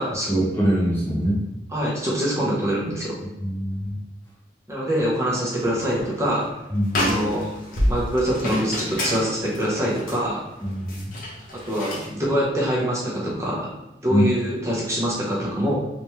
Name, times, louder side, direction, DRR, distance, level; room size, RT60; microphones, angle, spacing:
voice 1, 0.3-1.4 3.4-4.0 6.7-7.2 10.7-11.2 14.1-14.2, equal, 10° left, -7 dB, 0.7 m, -23 dB
voice 2, 1.7-3.2 4.7-6.5 7.0-7.5 7.9-10.4 11.6-13.7 14.0-15.7, equal, 15° right, -5 dB, 0.9 m, -24 dB
sound 1, 5.6-6.1 6.4-6.5 6.8-12.1, left 1 dB, 50° left, 0.9 m, -29 dB
3.4 x 2.9 x 3.1 m, 0.96 s
head